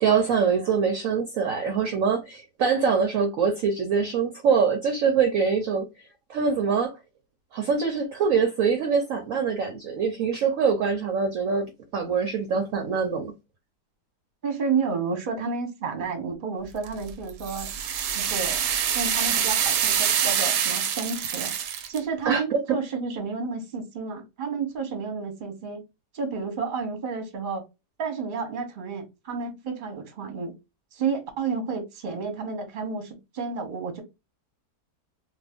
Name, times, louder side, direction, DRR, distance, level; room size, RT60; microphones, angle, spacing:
voice 1, 0.0-5.9 6.3-7.0 7.5-11.7 11.9-13.3 22.3-22.6, right 6 dB, 65° right, 0.9 m, -24 dB
voice 2, 14.4-17.7 18.1-18.6 18.9-21.5 21.9-25.8 26.1-27.6 28.0-30.5 30.9-34.0, right 5 dB, 40° right, 0.9 m, -31 dB
sound 1, 16.8-22.0, right 8 dB, 90° right, 1.2 m, -25 dB
2.6 x 2.4 x 3.4 m
omnidirectional pair, 1.8 m